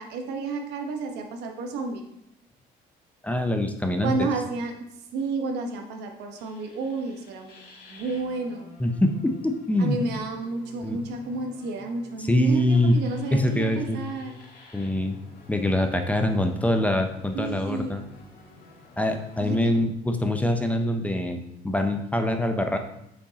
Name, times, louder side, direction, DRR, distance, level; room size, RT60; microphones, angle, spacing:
voice 1, 0.0-2.0 4.0-4.9 5.1-8.7 9.8-14.3 17.3-18.0 19.4-19.8, right 3 dB, 85° right, 3 dB, 1.0 m, -31 dB
voice 2, 3.2-4.3 8.8-10.0 10.8-11.0 12.2-13.0 13.3-14.0 14.7-15.2 15.5-18.0 19.0-22.8, left 1 dB, 10° left, 6 dB, 0.6 m, -24 dB
sound 1, 6.4-19.8, left 2 dB, 65° left, 1.5 m, -50 dB
6.9 x 5.3 x 2.8 m, 0.78 s
cardioid pair, 110°, 17 cm